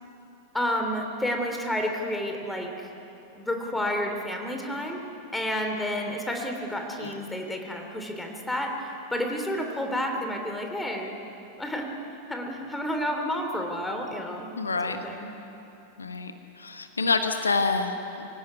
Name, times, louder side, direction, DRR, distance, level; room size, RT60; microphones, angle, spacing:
voice 1, 0.5-2.9 3.4-5.0 5.3-11.2 11.6-11.9 12.3-14.5 14.7-15.3, equal, 5° left, 3 dB, 3.3 m, -30 dB
voice 2, 14.6-15.0 16.0-16.3 16.6-18.4, left 4 dB, 75° left, 7 dB, 1.3 m, -27 dB
24.5 x 17.0 x 9.7 m, 3.0 s
figure-of-eight pair, 90°, 0 cm